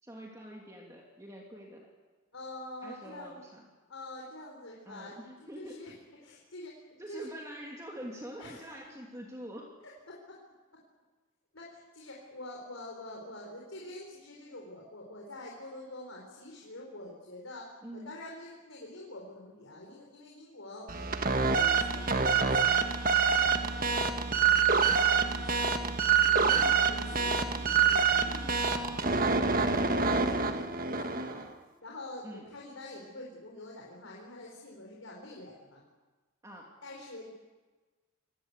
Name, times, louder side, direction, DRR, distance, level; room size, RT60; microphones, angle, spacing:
voice 1, 0.0-1.9 2.8-3.6 4.9-5.8 7.0-9.7 17.8-18.1 26.4-26.8 31.1-31.3 32.2-32.4 36.4-36.7, equal, 15° right, -1 dB, 2.6 m, -45 dB
voice 2, 2.3-3.4 3.9-5.2 5.5-5.9 6.2-7.3 8.4-8.7 9.8-10.4 11.5-24.1 24.4-31.4 31.8-35.8 36.8-37.3, left 1 dB, 75° left, -2 dB, 4.3 m, -46 dB
sound 1, 20.9-31.5, right 5 dB, 40° right, 1.4 m, -26 dB
26.5 x 20.5 x 8.2 m, 1.3 s
head